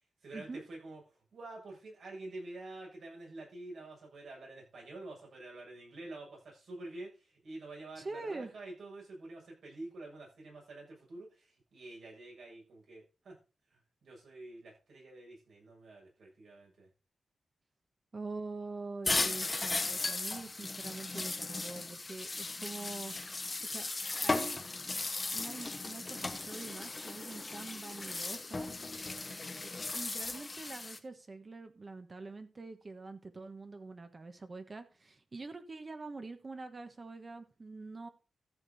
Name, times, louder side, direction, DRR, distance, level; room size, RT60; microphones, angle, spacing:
voice 1, 0.2-13.4 13.7-16.9 29.0-29.5, right 2 dB, 80° right, -2 dB, 7.4 m, -48 dB
voice 2, 8.0-8.5 18.1-23.1 23.7-23.9 24.2-24.6 25.3-28.7 29.6-38.1, right 3 dB, 40° right, 8 dB, 1.3 m, -45 dB
sound 1, 19.0-31.0, left 3 dB, 30° left, 1.1 m, -37 dB
14.0 x 6.8 x 4.2 m, 0.33 s
wide cardioid pair, 95°, 0 cm